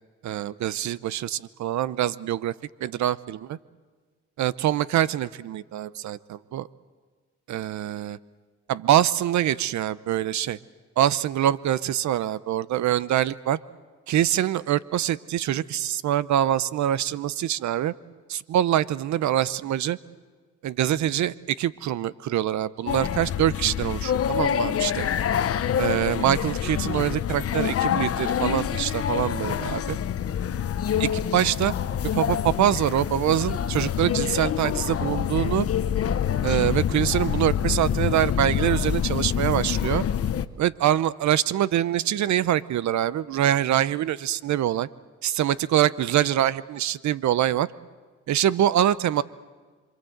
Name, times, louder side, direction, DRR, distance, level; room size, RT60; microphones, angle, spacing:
voice 1, 0.2-2.5 2.8-3.6 4.4-6.7 7.5-8.2 8.7-10.6 11.0-13.6 14.1-17.9 18.3-20.0 20.6-25.1 25.8-30.0 31.0-31.7 32.1-35.7 36.4-40.0 40.6-44.9 45.2-47.7 48.3-49.2, right 11 dB, 70° right, 18 dB, 0.8 m, -24 dB
sound 1, 22.9-40.5, left 9 dB, 50° left, 1.0 m, -26 dB
27.0 x 24.0 x 7.9 m, 1.5 s
cardioid pair, 90°, 30 cm